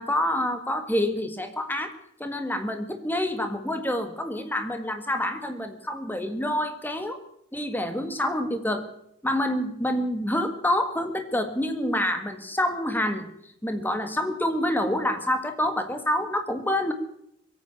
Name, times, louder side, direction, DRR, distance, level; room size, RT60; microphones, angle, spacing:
voice 1, 0.0-1.9 2.2-7.2 7.5-8.9 9.2-13.3 13.6-16.9, left 1 dB, 10° left, 7 dB, 1.7 m, -27 dB
22.5 x 8.9 x 6.9 m, 0.74 s
head